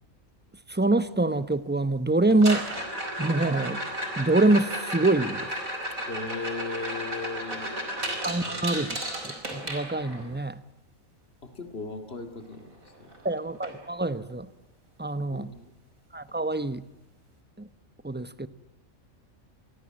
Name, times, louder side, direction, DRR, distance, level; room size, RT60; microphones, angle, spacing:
voice 1, 0.7-2.7 3.2-3.8 4.2-5.5 8.2-9.0 9.2-10.6 13.2-14.5 15.0-15.5 16.1-16.8 17.6-17.7 18.0-18.5, right 2 dB, 10° right, 13 dB, 1.0 m, -25 dB
sound 1, 2.3-10.3 12.5-12.6 12.9-13.2 13.6-13.7 14.3-14.4 16.3-16.4, right 1 dB, 85° right, 5.4 m, -33 dB
voice 2, 6.0-7.7 8.4-8.9 11.4-13.1 15.3-15.7, left 4 dB, 45° left, 7 dB, 2.8 m, -37 dB
30.0 x 23.5 x 7.7 m, 0.86 s
omnidirectional pair, 1.4 m